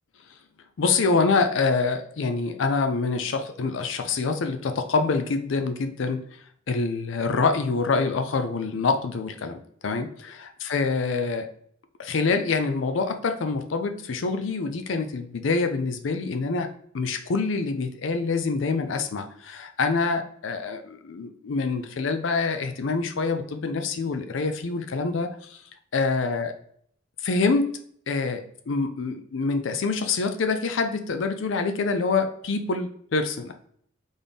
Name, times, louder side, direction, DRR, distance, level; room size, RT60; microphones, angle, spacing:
voice 1, 0.8-6.2 6.7-11.5 12.0-16.7 16.9-25.6 25.9-26.5 27.2-27.7 28.1-33.5, left 4 dB, 65° left, 7 dB, 0.5 m, -26 dB
4.1 x 3.5 x 3.4 m, 0.63 s
head